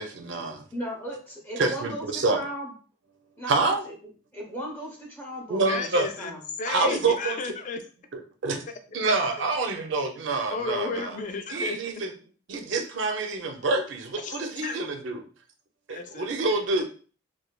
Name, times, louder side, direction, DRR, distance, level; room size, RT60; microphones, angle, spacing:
voice 1, 0.0-0.6 1.6-2.4 3.5-3.8 5.5-6.1 6.7-7.4 8.4-8.6 8.9-11.1 11.5-12.1 12.5-15.2 15.9-16.8, right 3 dB, 65° right, 5 dB, 0.5 m, -27 dB
voice 2, 0.7-2.7 3.4-3.9 4.3-5.9 6.2-6.4, right 1 dB, 10° left, -2 dB, 0.7 m, -36 dB
voice 3, 5.7-6.3 6.6-7.8 10.5-11.8 14.2-14.4 14.6-14.8 15.9-16.6, left 4 dB, 40° left, 6 dB, 0.3 m, -33 dB
3.1 x 2.1 x 2.2 m, 0.39 s
head